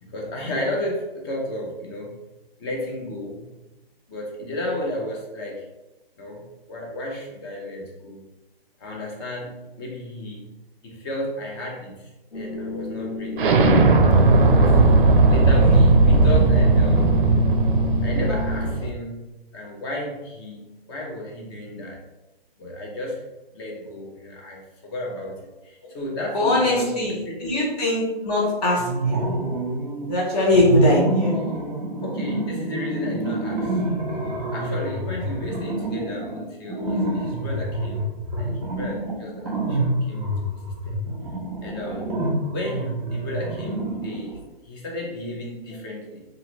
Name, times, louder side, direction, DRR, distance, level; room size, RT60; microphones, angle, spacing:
voice 1, 0.0-2.2 2.6-3.5 4.1-5.7 6.2-8.2 8.8-10.5 10.8-13.9 14.5-14.8 15.3-17.1 18.0-19.3 19.5-22.0 22.6-26.9 27.3-27.5 32.0-33.8 34.5-38.1 38.4-40.6 40.8-41.0 41.6-42.1 42.5-44.4 44.6-46.2, left 1 dB, 25° left, -1 dB, 0.6 m, -33 dB
sound 1, 12.3-18.7, left 4 dB, 65° left, 1.0 m, -31 dB
Explosion, 13.4-18.9, right 3 dB, 60° right, 0.5 m, -16 dB
voice 2, 26.3-29.3 30.1-31.4, left 2 dB, 40° left, -4 dB, 1.2 m, -21 dB
sound 2, 28.8-30.1 30.5-44.4, right 1 dB, 15° right, 0.6 m, -27 dB
2.7 x 2.5 x 3.0 m, 1.0 s
hypercardioid pair, 140°, 31 cm